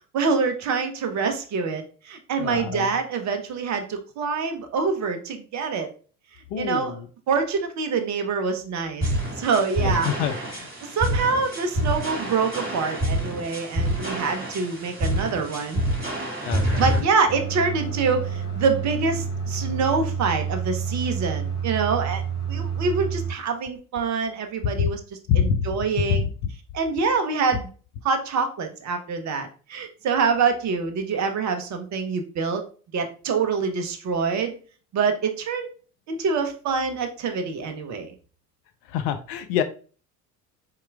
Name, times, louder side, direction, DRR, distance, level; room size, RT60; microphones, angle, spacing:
voice 1, 0.1-5.9 6.6-7.0 7.3-10.1 10.9-15.8 16.8-22.2 22.5-26.3 26.7-27.7 28.0-32.6 32.9-34.6 34.9-35.7 36.1-38.1, right 5 dB, 35° right, 7 dB, 0.8 m, -25 dB
voice 2, 2.4-2.9 6.5-7.1 9.8-10.7 16.5-17.1 24.8-24.9 25.3-25.6 26.1-26.2 38.9-39.6, left 8 dB, 50° left, 9 dB, 0.5 m, -26 dB
sound 1, 9.0-17.0, right 1 dB, 20° right, 2.1 m, -27 dB
sound 2, 17.3-23.3, right 6 dB, 65° left, 1.2 m, -29 dB
4.2 x 3.7 x 2.3 m, 0.39 s
figure-of-eight pair, 60°, 47 cm